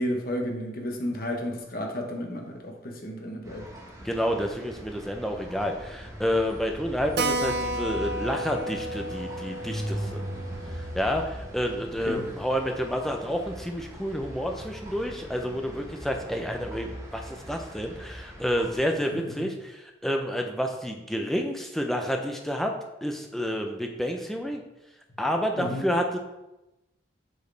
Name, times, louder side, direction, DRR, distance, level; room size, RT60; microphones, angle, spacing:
voice 1, 0.0-3.6 12.1-12.2 25.6-25.9, equal, 50° left, 2 dB, 1.1 m, -32 dB
sound 1, 3.4-18.8, equal, 15° right, 1.1 m, -40 dB
voice 2, 4.0-10.2 10.9-19.7 20.0-22.7 23.0-24.6 25.2-26.2, equal, ahead, 2 dB, 0.6 m, -29 dB
Keyboard (musical), 7.2-12.2 12.5-12.6 12.9-13.0 13.2-13.3 13.9-14.2, right 2 dB, 55° right, 0.6 m, -33 dB
8.0 x 4.7 x 3.4 m, 0.97 s
head